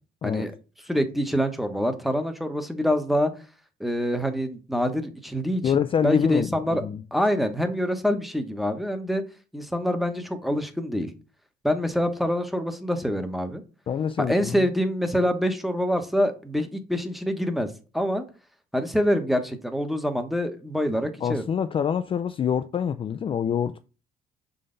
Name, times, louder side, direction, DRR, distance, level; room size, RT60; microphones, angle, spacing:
voice 1, 0.9-3.3 3.8-5.7 6.0-6.8 7.1-9.2 9.5-11.1 11.6-13.6 14.2-18.2 18.7-21.4, equal, ahead, 1.0 m, -25 dB
voice 2, 5.6-7.0 13.9-14.7 21.2-23.8, left 8 dB, 30° left, 0.4 m, -26 dB
6.7 x 3.9 x 3.8 m
cardioid pair, 110°, 17 cm